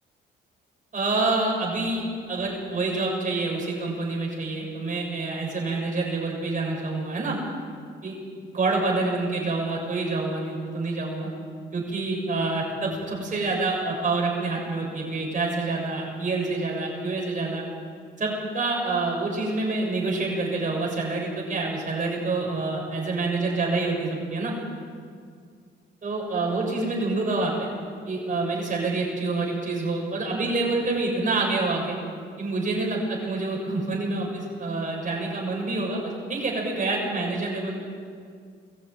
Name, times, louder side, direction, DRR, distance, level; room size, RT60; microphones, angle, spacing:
voice 1, 0.9-2.0 2.3-7.4 8.0-8.1 8.5-11.3 11.7-17.6 18.2-24.5 26.0-27.7 28.0-32.0 32.4-37.8, right 3 dB, 40° right, -2 dB, 6.8 m, -27 dB
21.0 x 15.0 x 9.2 m, 2.1 s
cardioid pair, 90°, 20 cm